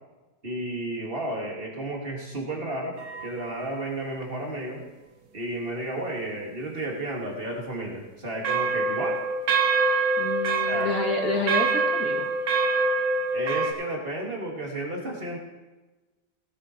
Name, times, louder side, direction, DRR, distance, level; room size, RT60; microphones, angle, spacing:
voice 1, 0.4-2.9 3.2-4.8 5.3-9.2 10.7-10.9 13.3-15.4, right 1 dB, 40° right, -1 dB, 2.8 m, -32 dB
sound 1, 3.0-3.6 8.4-13.7, right 3 dB, 80° right, 1.8 m, -25 dB
voice 2, 10.2-12.3, left 3 dB, 85° left, 0 dB, 2.6 m, -28 dB
17.5 x 8.4 x 4.7 m, 1.1 s
omnidirectional pair, 1.5 m